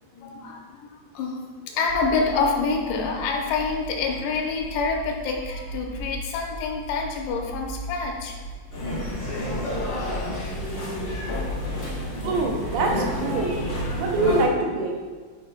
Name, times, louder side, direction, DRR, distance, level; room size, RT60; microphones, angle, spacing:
voice 1, 0.1-8.4 8.8-8.9 9.7-9.8 10.8-10.9 11.5-11.6, left 4 dB, 85° left, 0 dB, 2.7 m, -27 dB
sound 1, 1.9-13.3, right 1 dB, 55° right, 1.7 m, -39 dB
sound 2, 8.7-14.4, left 1 dB, 45° left, 1.0 m, -29 dB
voice 2, 12.2-13.5 14.0-15.0, right 2 dB, 80° right, 1 dB, 2.7 m, -24 dB
10.5 x 4.9 x 2.2 m, 1.5 s
omnidirectional pair, 4.7 m